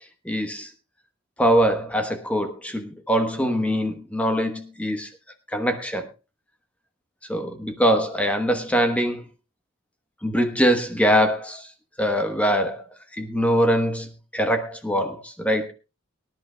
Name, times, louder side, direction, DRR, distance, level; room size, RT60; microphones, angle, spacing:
voice 1, 0.2-0.7 1.4-5.1 5.5-6.1 7.3-9.2 10.2-11.7 12.0-12.8 13.2-14.1 14.3-15.7, equal, 5° left, 6 dB, 1.1 m, -23 dB
23.5 x 10.5 x 2.3 m, 0.28 s
head